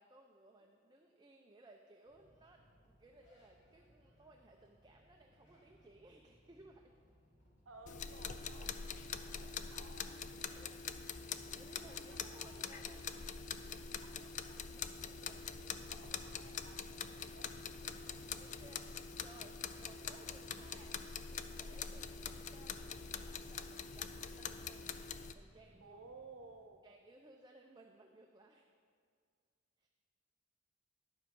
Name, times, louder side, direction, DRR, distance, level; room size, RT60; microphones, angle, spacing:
voice 1, 0.0-7.0 8.4-8.8 10.4-10.7 11.1-13.4 14.8-15.9 17.8-21.0 21.3-26.0 26.8-28.7 29.8-29.9, right 2 dB, 20° right, 2 dB, 0.6 m, -62 dB
sound 1, 2.0-19.1, equal, 60° left, 3.1 m, -68 dB
voice 2, 7.6-8.8 9.1-10.1 11.9-12.7 14.0-14.6 15.2-17.5 25.8-26.8, right 3 dB, 80° right, 6 dB, 0.8 m, -58 dB
sound 2, 7.9-25.3, left 6 dB, 40° left, 0.4 m, -44 dB
sound 3, 12.6-26.7, equal, ahead, 1.5 m, -67 dB
11.5 x 7.1 x 5.3 m, 2.1 s
head